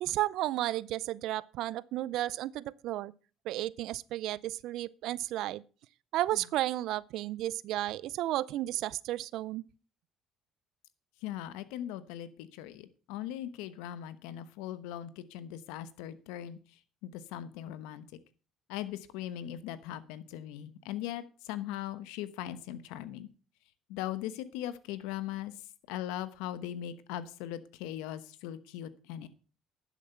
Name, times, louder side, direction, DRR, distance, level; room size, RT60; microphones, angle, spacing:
voice 1, 0.0-3.1 3.5-5.6 6.1-9.6, right 15 dB, 75° right, 0.5 m, -33 dB
voice 2, 11.2-16.6 17.0-18.0 18.7-23.3 23.9-25.5 25.9-29.3, left 12 dB, 90° left, 1.0 m, -39 dB
11.5 x 7.1 x 5.7 m
supercardioid pair, 85°, 0 cm